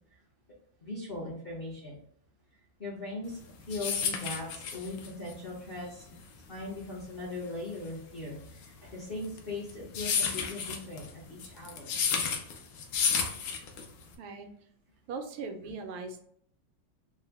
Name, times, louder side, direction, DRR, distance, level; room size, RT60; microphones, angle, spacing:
voice 1, 0.8-1.9 2.8-3.4 3.7-6.2 6.5-11.9, left 2 dB, 45° left, -7 dB, 0.7 m, -39 dB
sound 1, 3.3-14.1, left 6 dB, 75° left, 1.2 m, -32 dB
voice 2, 14.2-14.5 15.1-16.2, right 4 dB, 85° right, 5 dB, 1.4 m, -39 dB
3.8 x 2.0 x 3.3 m, 0.65 s
omnidirectional pair, 2.1 m